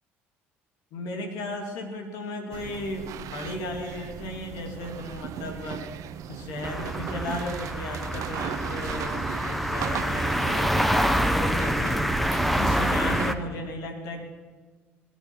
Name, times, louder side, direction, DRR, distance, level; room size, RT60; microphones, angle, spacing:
voice 1, 0.9-5.9 6.3-12.1 12.6-14.2, left 1 dB, 70° left, 3 dB, 2.7 m, -35 dB
sound 1, 2.5-13.3, right 10 dB, 60° right, 0.9 m, -36 dB
sound 2, 6.6-13.4, equal, ahead, 1.1 m, -26 dB
19.5 x 10.5 x 6.2 m, 1.5 s
hypercardioid pair, 60°, 6 cm